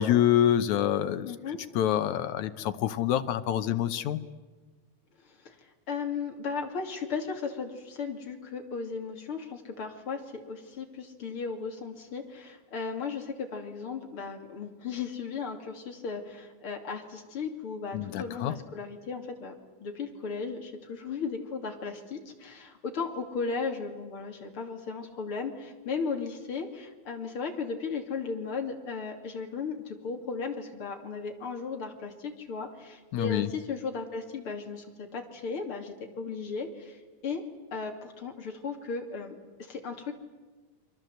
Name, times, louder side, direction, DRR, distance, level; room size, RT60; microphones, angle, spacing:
voice 1, 0.0-1.3 1.8-4.2 17.9-18.5 33.1-33.5, left 11 dB, 70° left, 11 dB, 2.1 m, -26 dB
voice 2, 1.2-1.6 5.2-19.5 19.8-37.4 37.7-40.1, left 5 dB, 40° left, 3 dB, 3.3 m, -36 dB
29.0 x 24.0 x 7.9 m, 1.3 s
omnidirectional pair, 3.9 m